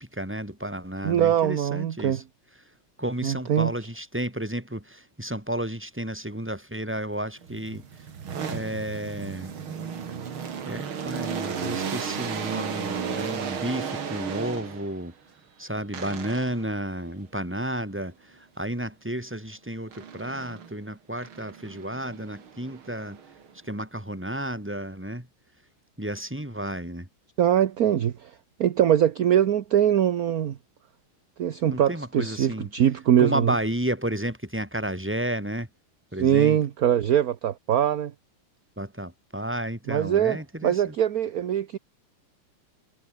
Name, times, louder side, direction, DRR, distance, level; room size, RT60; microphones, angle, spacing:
voice 1, 0.0-2.2 3.0-8.1 8.5-9.5 10.6-15.1 15.6-23.2 23.6-25.3 26.0-27.1 31.7-32.7 33.2-35.7 36.1-36.6 38.8-40.9, right 1 dB, 5° right, 3.9 m, -32 dB
voice 2, 1.0-2.2 3.2-3.7 27.4-28.3 28.6-30.6 31.4-33.5 36.2-38.1 39.9-41.8, right 10 dB, 55° right, 1.2 m, -22 dB
sound 1, 7.4-15.0 15.9-16.7 19.9-20.7 21.2-23.6, right 7 dB, 75° right, 3.1 m, -34 dB
omnidirectional pair, 2.3 m